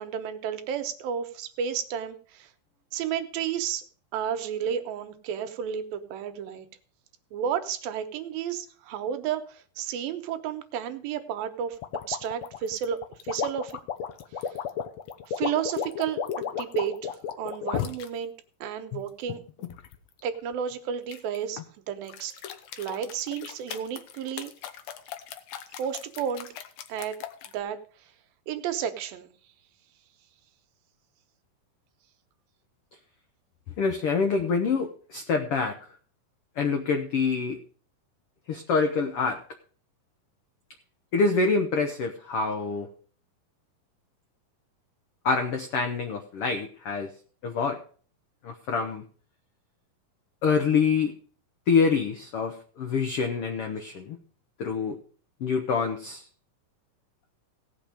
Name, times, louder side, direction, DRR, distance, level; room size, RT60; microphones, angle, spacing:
voice 1, 0.0-2.5 2.9-3.8 4.1-6.7 7.3-11.8 12.1-13.0 13.2-13.8 15.3-18.3 18.6-19.4 20.2-21.6 21.9-22.3 22.8-24.5 25.8-26.5 26.9-27.1 27.5-27.8 28.5-29.3, right 8 dB, 85° right, 8 dB, 2.8 m, -32 dB
sound 1, 11.8-18.1 18.7-20.0 21.1-21.7 22.1-27.5, left 8 dB, 70° left, 1.7 m, -34 dB
voice 2, 33.8-35.8 36.6-37.6 38.5-39.4 41.1-42.9 45.2-47.1 47.4-47.8 48.4-49.0 50.4-51.1 51.7-54.2 54.6-55.0 55.4-56.2, left 5 dB, 85° left, 5 dB, 1.2 m, -26 dB
17.0 x 6.0 x 5.0 m, 0.43 s
omnidirectional pair, 4.1 m